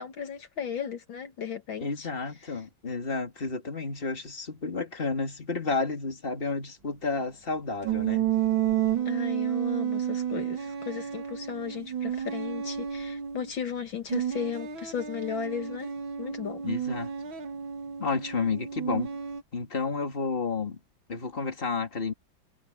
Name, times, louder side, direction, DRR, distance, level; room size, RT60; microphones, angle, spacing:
voice 1, 0.0-2.1 9.1-15.9 16.2-16.6, left 7 dB, 70° left, 2.4 m, -35 dB
voice 2, 1.8-8.3 16.6-17.1 18.0-19.1 19.5-20.8 21.1-22.1, left 4 dB, 25° left, 2.8 m, -31 dB
sound 1, 7.8-13.5 14.1-19.4, right 9 dB, 70° right, 2.7 m, -31 dB
omnidirectional pair, 2.2 m